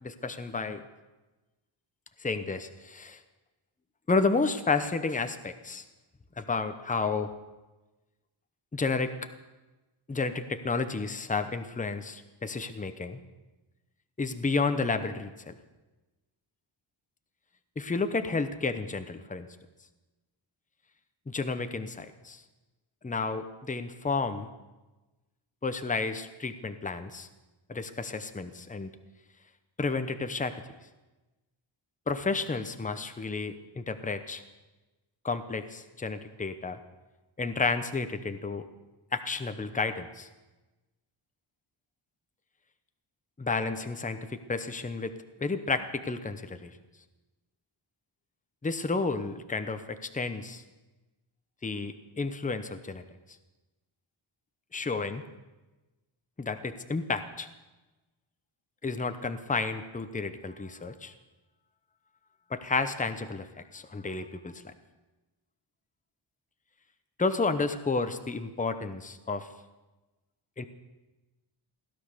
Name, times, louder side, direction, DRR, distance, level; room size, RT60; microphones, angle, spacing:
voice 1, 0.0-0.8 2.2-3.2 4.1-5.8 6.4-7.3 8.7-9.1 10.1-13.2 14.2-15.6 17.8-19.5 21.3-22.4 23.0-24.5 25.6-27.3 27.7-28.9 29.8-30.5 32.1-34.4 35.2-36.8 37.4-38.6 39.1-40.3 43.4-45.1 45.4-46.7 48.6-50.6 51.6-53.0 54.7-55.2 56.4-57.5 58.8-61.1 62.5-63.5 63.7-64.6 67.2-69.5 70.6-70.7, left 4 dB, 15° left, 9 dB, 0.8 m, -31 dB
16.5 x 12.0 x 6.7 m, 1.1 s
wide cardioid pair, 145°, 50 cm